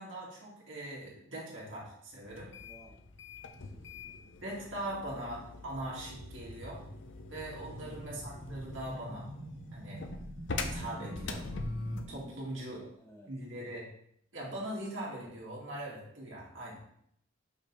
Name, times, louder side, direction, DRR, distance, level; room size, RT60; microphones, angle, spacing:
voice 1, 0.0-2.5 4.4-6.8 7.3-9.3 9.7-10.0 10.6-11.4 12.1-12.8 13.3-13.9 14.3-16.8, right 1 dB, 70° right, -5 dB, 2.4 m, -41 dB
sound 1, 2.3-12.2, left 3 dB, 65° left, 0.7 m, -43 dB
voice 2, 2.6-3.0 3.5-3.9 7.7-8.6 10.8-11.2 12.5-13.4, equal, 15° left, 1 dB, 1.1 m, -57 dB
sound 2, 6.2-12.3, right 1 dB, 40° right, 0.9 m, -46 dB
5.8 x 5.1 x 4.2 m, 0.70 s
head